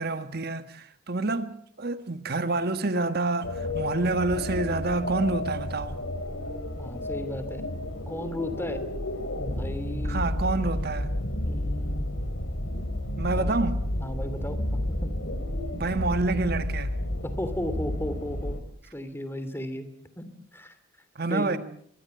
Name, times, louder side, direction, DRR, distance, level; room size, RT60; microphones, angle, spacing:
voice 1, 0.0-6.0 10.1-11.1 13.2-13.8 15.7-16.9 21.1-21.6, right 3 dB, 50° right, 1.4 m, -28 dB
sound 1, 3.4-18.6, left 1 dB, 75° left, 3.6 m, -31 dB
voice 2, 6.8-7.7 8.1-8.8 9.4-10.3 11.4-12.1 12.6-12.8 13.3-13.7 14.0-15.2 17.2-18.6 18.9-19.9 20.2-20.3 20.5-20.8 21.3-21.6, left 1 dB, 10° left, 2.8 m, -35 dB
24.5 x 22.5 x 7.8 m
head